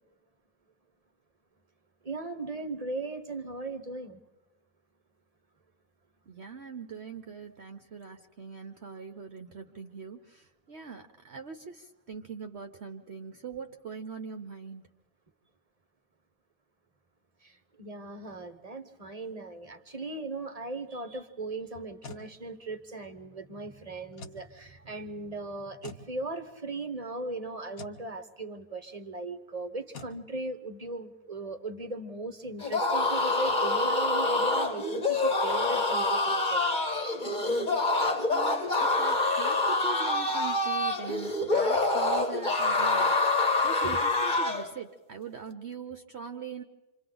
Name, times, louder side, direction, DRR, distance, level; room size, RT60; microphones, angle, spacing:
voice 1, 2.0-4.2 17.4-36.6 43.8-44.0, right 2 dB, 25° right, 9 dB, 1.0 m, -38 dB
voice 2, 6.3-14.8 38.3-43.1 43.6-46.6, right 6 dB, 50° right, 6 dB, 1.0 m, -42 dB
sound 1, 21.7-22.3 24.1-24.5 25.8-26.1 27.7-28.0 29.9-30.2, left 4 dB, 60° left, 1.6 m, -44 dB
sound 2, 32.6-44.7, left 2 dB, 30° left, 1.5 m, -26 dB
29.0 x 26.0 x 3.9 m, 1.1 s
omnidirectional pair, 1.7 m